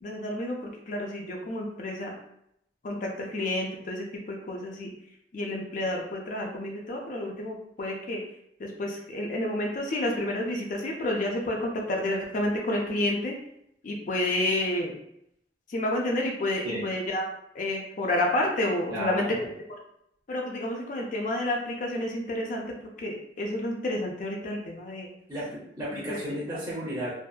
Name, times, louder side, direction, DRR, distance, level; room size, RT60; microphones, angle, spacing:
voice 1, 0.0-2.1 2.8-4.9 5.3-8.2 8.6-13.3 13.8-14.9 15.7-17.2 17.5-19.8 20.3-25.1, left 1 dB, 50° left, -1 dB, 0.4 m, -30 dB
voice 2, 18.9-19.5 25.3-27.1, equal, 15° right, -7 dB, 0.6 m, -34 dB
2.6 x 2.2 x 2.3 m, 0.75 s
head